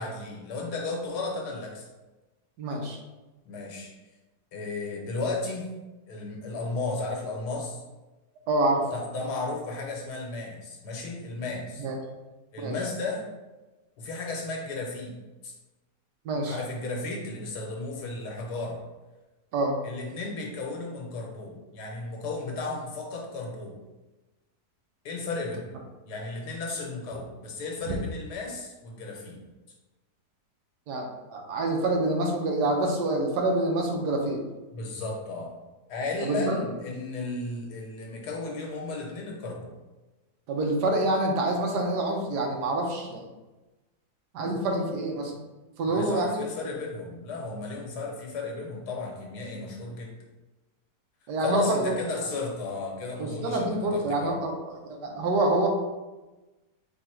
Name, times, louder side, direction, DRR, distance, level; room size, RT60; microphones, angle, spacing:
voice 1, 0.0-1.9 3.4-3.9 4.5-5.7 6.1-7.8 8.9-11.9 12.5-13.2 14.0-15.1 15.4-15.5 16.5-18.8 19.8-23.8 25.0-25.7 26.0-29.4 34.7-35.5 35.9-39.7 45.9-50.1 51.4-54.4, left 3 dB, 75° left, 0 dB, 1.5 m, -34 dB
voice 2, 2.6-3.0 8.5-8.9 11.8-12.0 12.6-12.7 16.2-16.6 19.5-19.7 27.9-28.0 30.9-34.4 36.2-36.6 40.5-43.2 44.3-45.4 45.8-46.4 51.3-52.0 53.2-55.7, right 2 dB, 85° right, 2 dB, 1.3 m, -26 dB
3.9 x 2.7 x 4.4 m, 1.1 s
omnidirectional pair, 1.7 m